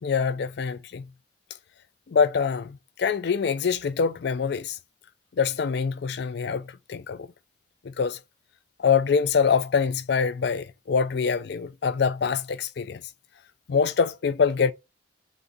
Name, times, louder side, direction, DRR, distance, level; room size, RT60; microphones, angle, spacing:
voice 1, 0.0-1.1 2.1-4.8 5.4-7.3 7.8-8.2 8.8-13.0 13.7-14.7, left 6 dB, 60° left, 0.4 m, -25 dB
4.0 x 2.7 x 3.6 m
head